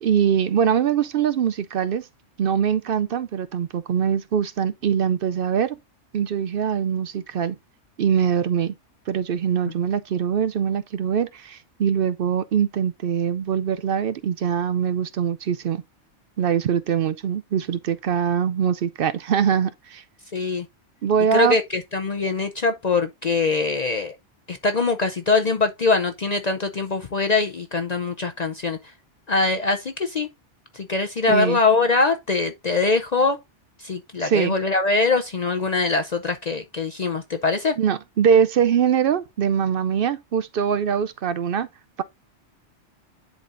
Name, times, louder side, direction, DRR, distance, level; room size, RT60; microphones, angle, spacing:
voice 1, 0.0-2.1 2.4-5.8 6.1-7.6 8.0-8.7 9.1-15.8 16.4-20.0 21.0-21.6 31.3-31.6 34.2-34.5 37.8-41.7, right 8 dB, 60° right, 0.6 m, -22 dB
voice 2, 20.3-20.7 21.3-24.1 24.5-28.8 29.3-30.3 30.7-33.4 33.8-37.8, left 3 dB, 45° left, 0.6 m, -22 dB
10.5 x 4.1 x 2.5 m
omnidirectional pair, 1.2 m